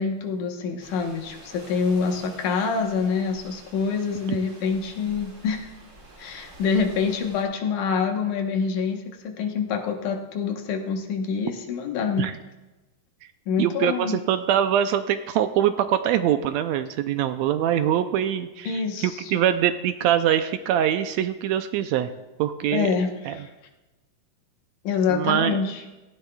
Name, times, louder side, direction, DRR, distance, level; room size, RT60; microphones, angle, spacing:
voice 1, 0.0-5.7 6.2-12.3 13.5-14.2 18.7-19.3 22.7-23.5 24.8-25.8, left 5 dB, 85° left, 4 dB, 2.6 m, -26 dB
sound 1, 0.8-7.4, right 2 dB, 30° right, 3.5 m, -48 dB
voice 2, 13.6-22.1 22.4-22.9 23.3-23.4 25.1-25.6, right 10 dB, 80° right, 9 dB, 1.7 m, -23 dB
17.0 x 15.5 x 2.3 m, 1.1 s
omnidirectional pair, 3.4 m